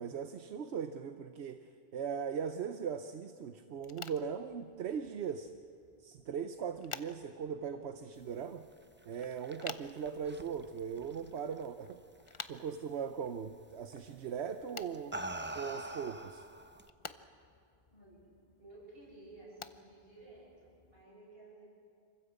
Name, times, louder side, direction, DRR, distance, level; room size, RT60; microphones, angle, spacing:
voice 1, 0.0-1.6 1.9-5.5 6.0-8.6 9.1-12.0 12.5-15.2 15.5-16.4, right 7 dB, 85° right, 9 dB, 1.1 m, -39 dB
sound 1, 3.8-21.0, left 5 dB, 35° left, 0.6 m, -53 dB
sound 2, 9.0-11.9 12.3-12.7 13.9-14.1 14.8-16.9, right 1 dB, 15° right, 0.6 m, -44 dB
voice 2, 17.9-21.6, right 2 dB, 65° right, -5 dB, 7.8 m, -55 dB
26.5 x 15.0 x 8.1 m, 2.4 s
omnidirectional pair, 1.1 m